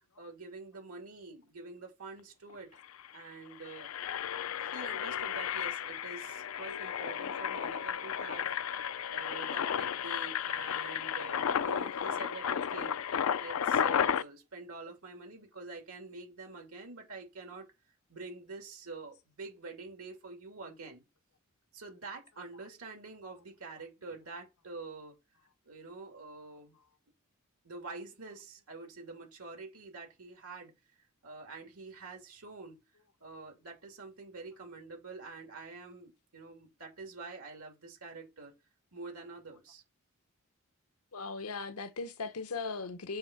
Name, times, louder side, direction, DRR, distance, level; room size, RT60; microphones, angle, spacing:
voice 1, 0.2-2.8 3.1-3.9 4.6-8.5 9.1-17.7 18.1-21.0 21.7-25.2 25.7-26.8 27.6-30.7 31.2-32.8 33.2-38.5 38.9-39.8, right 3 dB, 80° right, 2.6 m, -47 dB
Engine, 2.5-2.6 2.8-3.1 3.5-14.2, left 8 dB, 70° left, 0.4 m, -33 dB
voice 2, 41.1-43.2, left 4 dB, 85° left, 0.8 m, -38 dB
7.6 x 3.5 x 5.6 m
head